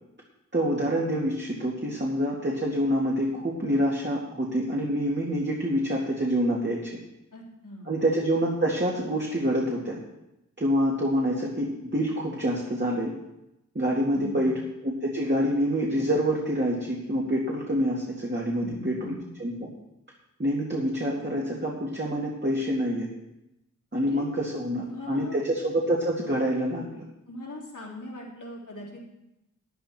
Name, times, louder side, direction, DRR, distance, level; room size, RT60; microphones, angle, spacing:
voice 1, 0.5-6.8 7.9-10.0 10.6-13.1 13.7-14.5 14.8-19.1 19.4-19.7 20.4-23.1 23.9-27.0, equal, 35° right, -3 dB, 2.3 m, -26 dB
voice 2, 7.3-7.9 14.1-14.6 18.6-19.2 23.9-24.3 24.8-25.4 27.3-29.0, left 1 dB, 80° left, -3 dB, 3.4 m, -40 dB
12.5 x 11.0 x 4.4 m, 0.90 s
wide cardioid pair, 55°, 30 cm